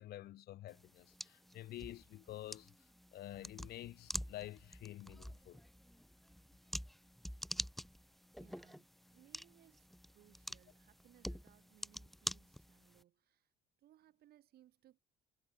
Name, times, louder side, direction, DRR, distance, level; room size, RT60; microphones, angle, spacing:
voice 1, 0.0-5.6, left 14 dB, 70° left, 1.7 m, -49 dB
sound 1, 0.7-13.0, equal, ahead, 0.9 m, -48 dB
voice 2, 8.4-13.5 13.8-15.0, right 13 dB, 65° right, 7.5 m, -67 dB
cardioid pair, 110°, 17 cm